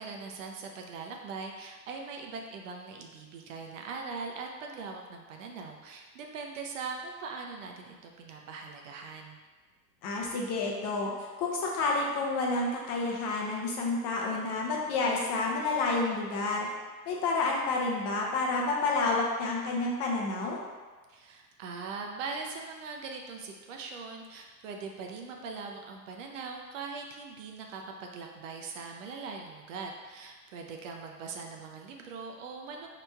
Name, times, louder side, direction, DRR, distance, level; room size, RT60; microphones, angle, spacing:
voice 1, 0.0-9.4 21.1-32.9, right 4 dB, 50° right, 2 dB, 0.5 m, -41 dB
voice 2, 10.0-16.7 17.1-20.6, left 3 dB, 35° left, -2 dB, 0.6 m, -29 dB
4.2 x 2.9 x 2.3 m, 1.3 s
hypercardioid pair, 105°, 49 cm